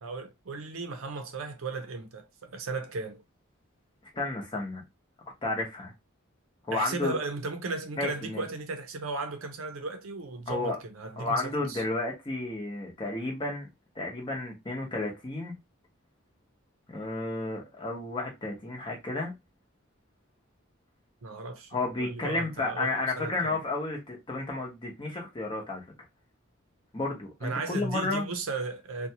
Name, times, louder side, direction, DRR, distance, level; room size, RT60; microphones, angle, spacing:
voice 1, 0.0-3.2 6.7-11.4 11.7-11.8 21.2-21.7 22.0-22.9 23.2-23.6 27.4-29.1, right 3 dB, 85° right, 0.6 m, -36 dB
voice 2, 4.1-4.8 5.4-5.9 6.7-7.2 8.0-8.4 10.5-10.8 11.2-13.7 14.0-15.5 16.9-19.3 21.7-25.8 26.9-28.3, left 2 dB, 25° left, 0.8 m, -32 dB
2.5 x 2.2 x 2.8 m
head